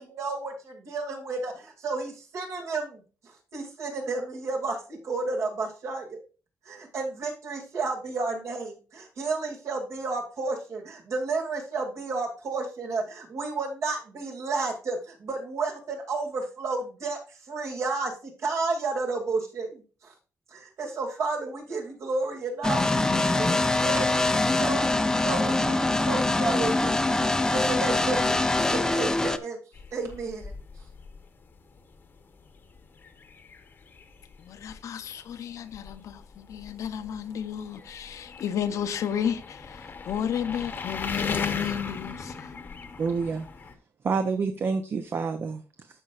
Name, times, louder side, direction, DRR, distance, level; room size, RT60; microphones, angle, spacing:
voice 1, 0.0-6.2 6.7-20.1 20.5-29.6 29.9-30.5, right 3 dB, 65° right, 2.3 m, -32 dB
sound 1, 22.6-29.4, left 2 dB, 10° left, 0.5 m, -24 dB
sound 2, 29.7-43.7, left 5 dB, 40° left, 0.9 m, -39 dB
voice 2, 34.4-42.5, left 8 dB, 75° left, 0.7 m, -32 dB
voice 3, 43.0-43.5 44.0-46.0, right 5 dB, 45° right, 0.6 m, -28 dB
13.0 x 5.4 x 2.4 m
wide cardioid pair, 165°, 6 cm